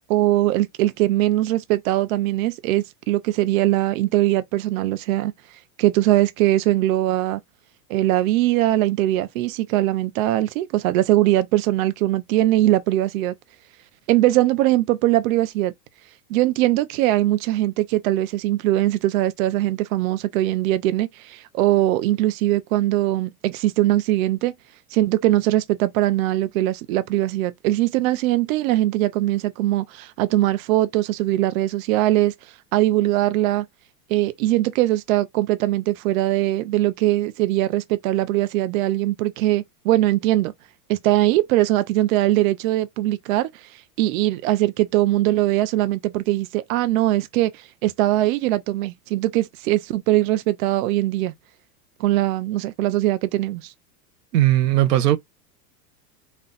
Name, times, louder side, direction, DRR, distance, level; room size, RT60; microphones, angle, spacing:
voice 1, 0.1-5.3 5.8-7.4 7.9-13.3 14.1-15.7 16.3-24.5 24.9-32.3 32.7-33.7 34.1-40.5 40.9-51.3 52.0-53.7, right 15 dB, 60° right, 0.7 m, -21 dB
voice 2, 54.3-55.2, right 14 dB, 90° right, 0.9 m, -17 dB
4.3 x 2.3 x 3.9 m
supercardioid pair, 130°, 46 cm